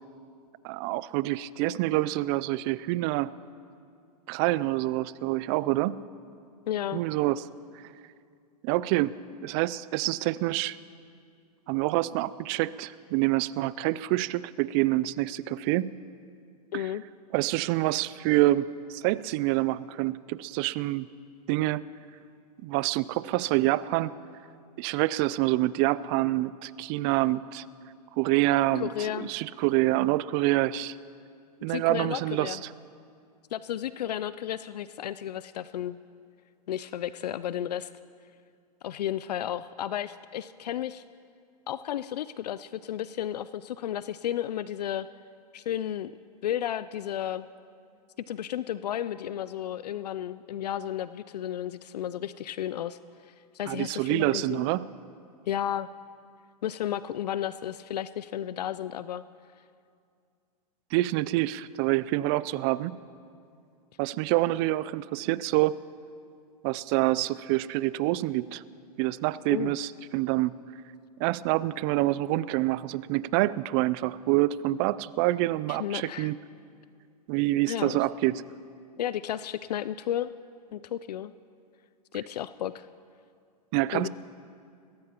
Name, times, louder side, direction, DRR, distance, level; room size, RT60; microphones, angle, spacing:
voice 1, 0.6-3.3 4.3-6.0 6.9-7.4 8.6-10.8 11.7-15.9 16.7-16.9 17.3-21.1 21.5-21.8 22.6-24.1 24.8-27.6 28.2-28.9 29.2-31.0 31.6-32.7 53.7-54.9 60.9-63.0 64.0-65.8 66.6-68.6 69.0-70.6 71.2-76.4 77.3-78.4 83.7-84.1, right 17 dB, 40° right, 19 dB, 0.4 m, -27 dB
voice 2, 6.7-7.0 16.7-17.0 28.8-29.3 31.7-32.6 33.5-36.0 36.7-37.9 38.8-41.0 41.7-45.1 45.5-46.1 46.4-47.5 48.3-53.0 53.2-54.7 55.5-55.9 56.6-59.2 69.5-69.7 75.7-76.3 77.7-78.0 79.0-80.3 80.7-81.3 82.1-82.9 83.9-84.1, left 11 dB, 80° left, 15 dB, 0.4 m, -33 dB
22.0 x 16.5 x 3.0 m, 2.3 s
hypercardioid pair, 115°, 21 cm